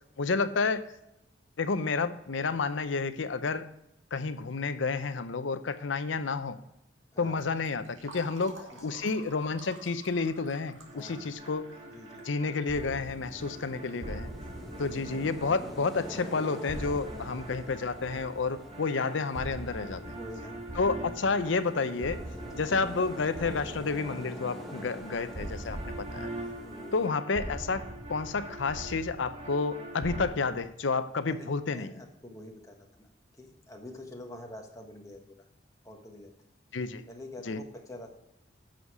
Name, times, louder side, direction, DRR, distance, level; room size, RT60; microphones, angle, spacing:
voice 1, 0.2-0.8 1.6-3.7 4.1-6.6 7.2-11.7 12.3-14.3 14.8-20.2 20.7-22.2 22.5-26.3 26.9-27.8 28.1-31.9 36.7-37.0 37.5-37.6, left 4 dB, 80° left, 12 dB, 0.6 m, -30 dB
voice 2, 7.1-7.4 8.7-8.9 10.9-11.4 11.8-12.3 13.9-14.1 17.1-17.4 20.2-20.6 22.4-22.7 26.6-27.1 31.3-33.1 33.3-35.5 35.8-36.3 37.1-38.1, left 1 dB, 15° left, 2 dB, 1.2 m, -47 dB
Fill (with liquid), 7.4-13.7, right 2 dB, 90° right, 2.2 m, -51 dB
sound 1, 10.9-30.3, right 1 dB, 35° right, 1.8 m, -42 dB
sound 2, 12.7-27.1, equal, ahead, 1.5 m, -46 dB
10.5 x 6.5 x 4.8 m, 0.85 s
head